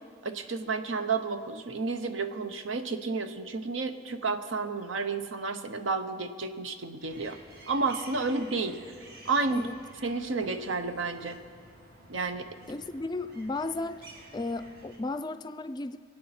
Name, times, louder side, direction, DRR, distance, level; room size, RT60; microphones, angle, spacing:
voice 1, 0.2-7.4 7.7-8.8 9.2-9.7 10.0-11.4 12.1-12.5, right 4 dB, 80° right, 8 dB, 0.9 m, -31 dB
sound 1, 7.0-15.0, right 1 dB, 55° right, 1.9 m, -52 dB
voice 2, 12.7-14.0 14.3-16.0, left 2 dB, 20° left, 12 dB, 0.4 m, -34 dB
26.0 x 8.7 x 4.3 m, 2.1 s
head